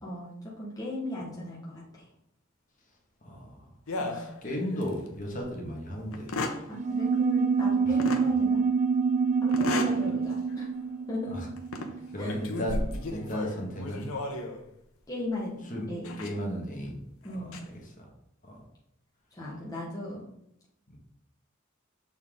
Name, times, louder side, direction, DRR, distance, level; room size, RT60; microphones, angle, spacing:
voice 1, 0.0-1.6 1.9-2.1 4.0-4.2 6.7-8.6 9.4-10.6 11.1-11.4 12.2-12.4 15.1-15.6 15.9-16.2 17.2-17.6 19.3-20.3, left 1 dB, 15° left, -5 dB, 1.1 m, -37 dB
voice 2, 3.2-3.7 4.1-6.3 7.8-8.0 11.3-11.5 12.1-14.1 15.6-15.9 16.2-17.0 17.3-18.1 18.4-18.6, equal, 40° left, -1 dB, 1.5 m, -35 dB
sound 1, 3.9-4.9 5.4-5.5 6.1-6.7 8.0-8.3 9.5-10.0 10.5-10.7 11.6-11.9 12.3-14.6 16.0-16.3 17.3-17.6, left 2 dB, 85° left, 0.9 m, -34 dB
sound 2, 6.7-12.7, right 5 dB, 35° right, 0.4 m, -27 dB
6.9 x 4.3 x 3.7 m, 0.75 s
head